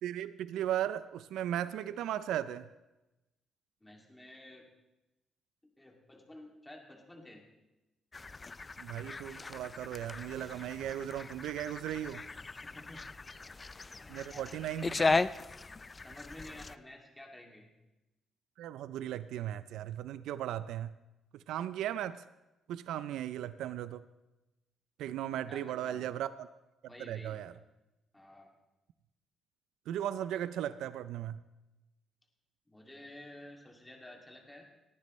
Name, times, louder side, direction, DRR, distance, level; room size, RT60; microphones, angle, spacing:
voice 1, 0.0-2.7 8.8-12.2 14.1-15.2 18.6-20.9 21.3-22.2 22.7-24.0 25.0-26.5 27.0-27.5 29.9-31.4, right 11 dB, 85° right, 14 dB, 0.4 m, -37 dB
voice 2, 3.8-4.7 5.8-7.4 12.5-13.1 13.5-14.6 16.0-17.7 25.5-26.2 26.9-27.4 28.1-28.5 32.7-34.7, left 1 dB, 10° left, 0 dB, 2.4 m, -52 dB
sound 1, 8.1-16.8, left 3 dB, 25° left, 0.4 m, -37 dB
18.5 x 11.5 x 3.2 m, 0.99 s
cardioid pair, 90°, 0 cm